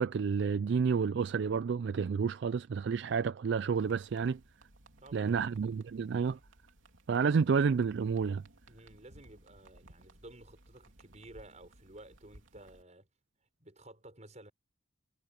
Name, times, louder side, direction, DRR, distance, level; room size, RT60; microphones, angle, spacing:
voice 1, 0.0-4.4 5.1-6.4 7.1-8.4, right 5 dB, 60° right, 0.3 m, -30 dB
sound 1, 3.8-12.8, right 1 dB, 90° right, 3.2 m, -60 dB
voice 2, 5.0-5.6 8.7-13.1 13.6-14.5, right 1 dB, 35° right, 6.5 m, -54 dB
head